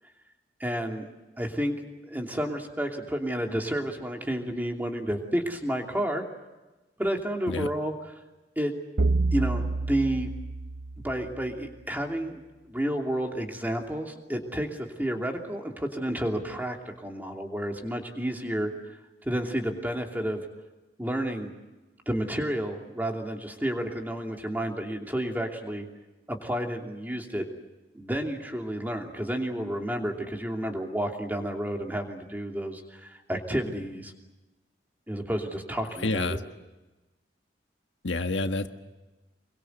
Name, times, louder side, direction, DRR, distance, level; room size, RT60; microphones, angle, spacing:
voice 1, 0.6-1.1 1.4-1.8 2.0-6.2 7.0-8.1 8.6-8.7 9.3-10.3 11.0-18.7 19.2-20.4 21.0-21.5 22.1-25.9 26.3-27.5 27.9-34.1 35.1-36.4, right 1 dB, 10° right, 2 dB, 2.9 m, -31 dB
sound 1, 9.0-11.4, right 3 dB, 70° right, 0.8 m, -28 dB
voice 2, 36.0-36.4 38.0-38.7, left 2 dB, 85° left, 6 dB, 1.6 m, -28 dB
26.0 x 22.5 x 8.1 m, 1.1 s
head